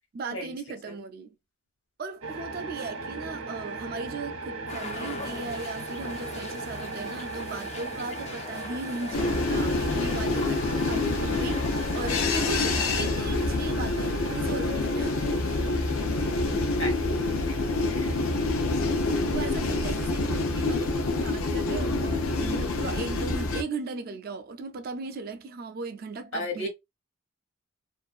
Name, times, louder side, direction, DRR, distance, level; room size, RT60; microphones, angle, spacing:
voice 1, 0.1-1.3 2.0-15.2 18.0-18.2 19.3-26.7, right 4 dB, 45° right, 0.3 m, -37 dB
sound 1, 2.2-20.5, right 3 dB, 80° right, 0.6 m, -39 dB
sound 2, 4.7-12.9, left 3 dB, 30° left, 0.4 m, -40 dB
sound 3, 9.1-23.6, left 2 dB, 75° left, 0.6 m, -27 dB
voice 2, 16.5-16.9 17.5-17.6 17.9-18.1 18.9-19.3 26.3-26.7, left 1 dB, 60° left, 1.1 m, -35 dB
2.6 x 2.4 x 2.3 m
head